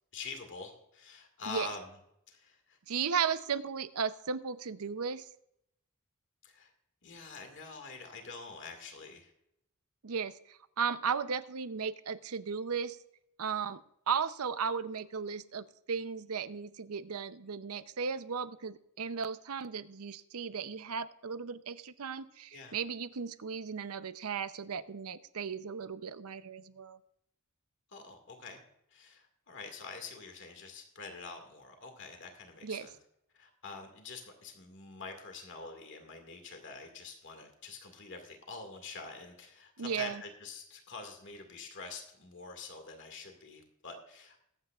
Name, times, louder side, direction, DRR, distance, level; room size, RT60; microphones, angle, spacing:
voice 1, 0.1-1.9 2.3-2.8 6.4-6.7 7.0-9.3 22.5-22.8 27.9-28.6 28.9-32.9 33.3-44.4, left 4 dB, 55° left, 4 dB, 2.1 m, -46 dB
voice 2, 2.9-5.3 10.0-13.0 13.4-13.8 14.1-27.0 32.6-32.9 39.8-40.2, right 6 dB, 80° right, 13 dB, 0.7 m, -35 dB
21.5 x 9.0 x 2.4 m, 0.77 s
head